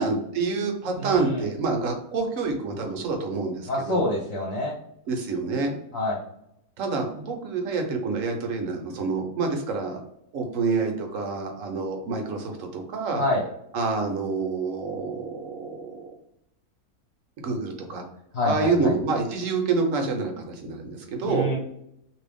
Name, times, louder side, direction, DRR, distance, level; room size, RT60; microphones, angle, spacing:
voice 1, 0.0-4.1 5.1-5.7 6.8-10.0 10.3-13.2 13.7-16.1 17.4-18.0 18.4-21.5, right 4 dB, 65° right, 3 dB, 1.0 m, -27 dB
voice 2, 1.0-1.5 3.7-4.8 5.9-6.2 13.1-13.4 18.3-18.9 21.2-21.6, left 1 dB, 50° left, -2 dB, 1.0 m, -26 dB
2.9 x 2.6 x 3.4 m, 0.78 s
omnidirectional pair, 1.6 m